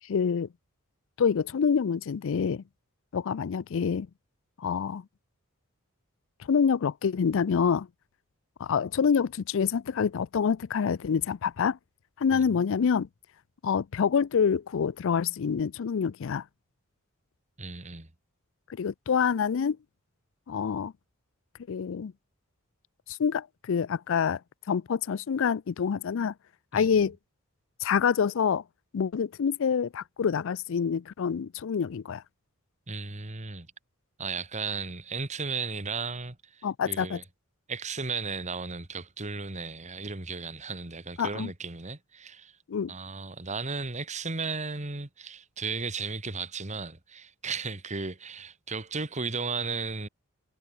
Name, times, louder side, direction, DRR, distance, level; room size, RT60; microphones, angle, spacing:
voice 1, 0.1-0.5 1.2-2.6 3.1-4.1 4.6-5.0 6.4-7.9 8.6-11.8 12.2-13.1 13.6-16.4 18.7-19.8 20.5-20.9 21.7-22.1 23.1-24.4 24.7-26.3 26.7-27.2 27.8-28.6 28.9-32.2 36.6-37.2 41.2-41.5 42.7-42.9, left 6 dB, 65° left, 0.4 m, -26 dB
voice 2, 12.3-12.6 17.6-18.1 26.7-27.1 32.9-33.7 34.2-37.2 37.7-42.6 42.9-50.1, right 4 dB, 35° right, 1.8 m, -35 dB
head